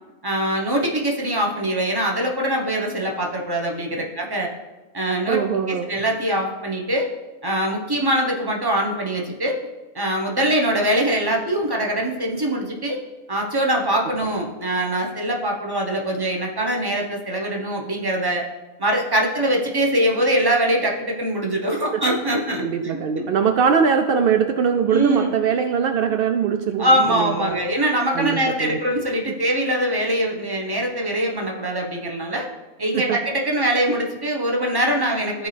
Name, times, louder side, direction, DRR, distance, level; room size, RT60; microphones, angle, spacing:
voice 1, 0.2-4.5 4.9-5.4 5.7-7.1 7.4-9.6 9.9-13.0 13.3-18.4 18.8-23.3 24.9-25.3 26.8-32.5 32.8-35.5, right 1 dB, 20° right, 0 dB, 1.0 m, -23 dB
voice 2, 5.3-5.9 22.6-27.6 28.1-28.8 32.9-33.2, right 7 dB, 80° right, 6 dB, 0.5 m, -21 dB
14.0 x 4.7 x 3.3 m, 1.2 s
omnidirectional pair, 1.5 m